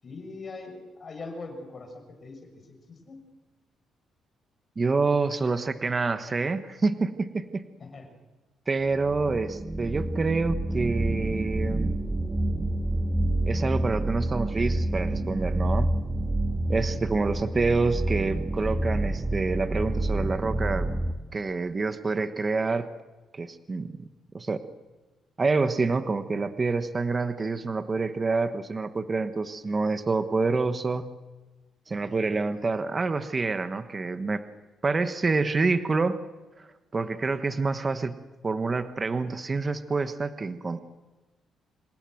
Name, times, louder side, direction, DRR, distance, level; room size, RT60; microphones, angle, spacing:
voice 1, 0.0-3.2 7.8-8.1, left 3 dB, 40° left, 5 dB, 6.6 m, -42 dB
voice 2, 4.8-7.6 8.7-12.0 13.5-15.9 16.7-20.9 21.3-22.9 23.3-23.9 24.3-24.6 25.4-31.1 31.9-34.4 34.8-36.2 36.9-40.8, right 3 dB, 30° right, 9 dB, 1.3 m, -27 dB
sound 1, 9.1-21.1, right 1 dB, 10° right, 2.0 m, -28 dB
27.5 x 17.5 x 7.9 m, 1.2 s
cardioid pair, 90°, 0 cm